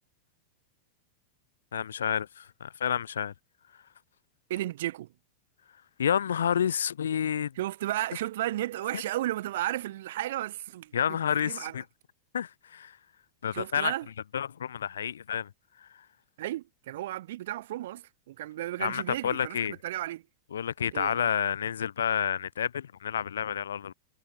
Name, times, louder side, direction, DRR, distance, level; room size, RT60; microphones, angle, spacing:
voice 1, 1.7-3.3 6.0-7.5 10.9-11.8 12.3-12.9 13.4-13.9 14.3-15.5 18.8-19.8 20.5-23.9, left 8 dB, 65° left, 0.4 m, -29 dB
voice 2, 4.5-5.1 7.6-11.7 13.5-14.1 16.4-20.2 20.9-21.3, right 14 dB, 55° right, 0.6 m, -34 dB
figure-of-eight pair, 90°, 0 cm